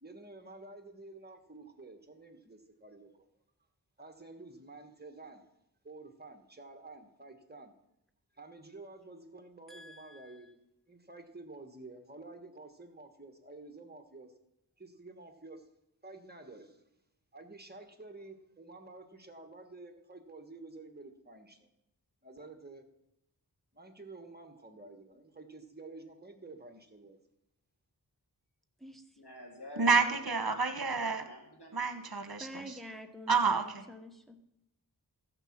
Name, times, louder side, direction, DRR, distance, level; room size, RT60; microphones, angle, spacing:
voice 1, 0.0-3.2 4.0-5.4 5.8-7.7 8.3-10.6 10.9-14.3 14.8-15.6 16.0-16.8 17.3-21.6 22.2-22.8 23.7-27.2, right 2 dB, 25° right, 1.3 m, -50 dB
voice 2, 9.7-10.5 28.8-29.2 32.4-34.4, equal, ahead, 1.1 m, -48 dB
voice 3, 29.2-30.1 31.2-32.1, left 1 dB, 70° left, 2.0 m, -49 dB
voice 4, 29.8-31.3 31.7-32.6 33.3-33.6, right 5 dB, 60° right, 1.3 m, -29 dB
14.5 x 6.8 x 5.9 m
wide cardioid pair, 55°, 40 cm